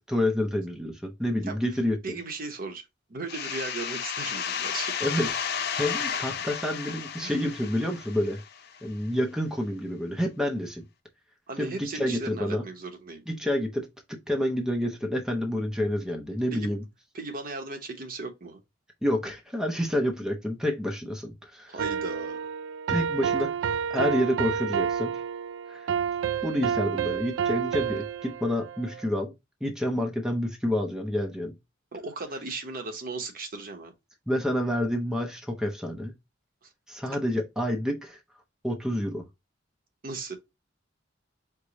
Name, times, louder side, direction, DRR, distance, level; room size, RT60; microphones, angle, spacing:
voice 1, 0.0-2.0 5.0-5.3 5.8-8.4 8.8-10.8 11.6-12.6 13.3-13.9 14.3-16.8 19.0-21.7 22.9-23.5 23.9-25.1 25.7-25.9 26.4-29.3 29.6-31.5 34.3-36.1 36.9-38.2 38.6-39.2, left 1 dB, 5° right, 0.6 m, -28 dB
voice 2, 1.5-5.0 6.0-6.1 7.2-7.4 11.5-13.2 16.5-16.7 17.1-18.6 21.7-22.5 31.9-33.9 36.6-36.7 40.0-40.4, right 3 dB, 50° right, 0.9 m, -37 dB
sound 1, 3.3-8.8, left 7 dB, 60° left, 0.5 m, -33 dB
sound 2, 21.8-29.1, right 7 dB, 80° right, 0.3 m, -29 dB
4.7 x 2.2 x 3.8 m
head